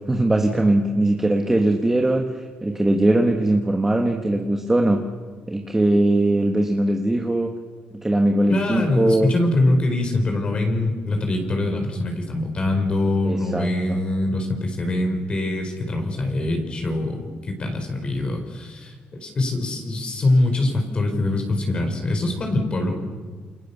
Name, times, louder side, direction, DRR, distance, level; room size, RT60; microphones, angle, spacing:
voice 1, 0.1-5.0 5.5-7.5 7.9-9.3 13.2-14.0, right 1 dB, 10° right, 3 dB, 1.7 m, -20 dB
voice 2, 8.5-23.0, left 2 dB, 30° left, 4 dB, 4.4 m, -23 dB
28.5 x 27.5 x 6.9 m, 1.5 s
cardioid pair, 150°, 3 cm